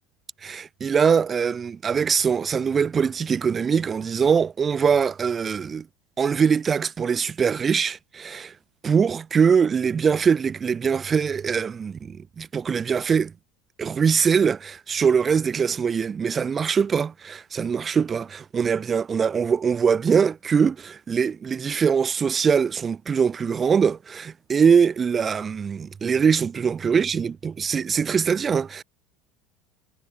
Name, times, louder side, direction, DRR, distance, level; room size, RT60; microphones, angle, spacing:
voice 1, 0.4-5.8 6.2-8.5 8.8-13.3 13.8-28.8, right 6 dB, 20° right, 6.6 m, -22 dB
cardioid pair, 150°, 0 cm